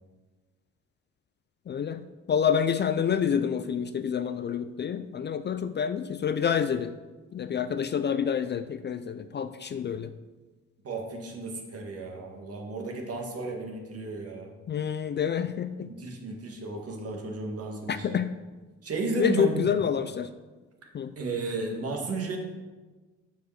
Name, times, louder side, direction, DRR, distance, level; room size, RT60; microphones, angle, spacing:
voice 1, 1.7-6.9 7.3-10.1 14.7-15.9 17.9-18.3 19.2-20.3 20.9-21.1, left 7 dB, 35° left, 11 dB, 0.4 m, -28 dB
voice 2, 10.8-14.5 15.8-18.2 18.8-19.8 21.2-22.4, right 3 dB, 50° right, 1 dB, 1.8 m, -33 dB
6.7 x 5.1 x 6.4 m, 1.3 s
cardioid pair, 90°, 30 cm